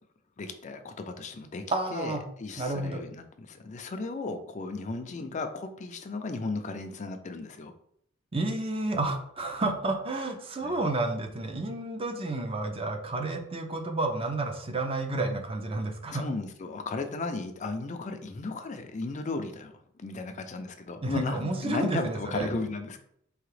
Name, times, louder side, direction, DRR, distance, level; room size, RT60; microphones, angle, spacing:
voice 1, 0.4-1.6 1.9-7.7 10.6-10.8 16.1-23.0, left 3 dB, 35° left, 7 dB, 0.4 m, -35 dB
voice 2, 1.7-2.2 2.6-3.0 8.3-16.2 21.0-22.5, right 2 dB, 25° right, 4 dB, 0.6 m, -31 dB
4.8 x 2.8 x 3.2 m, 0.70 s
head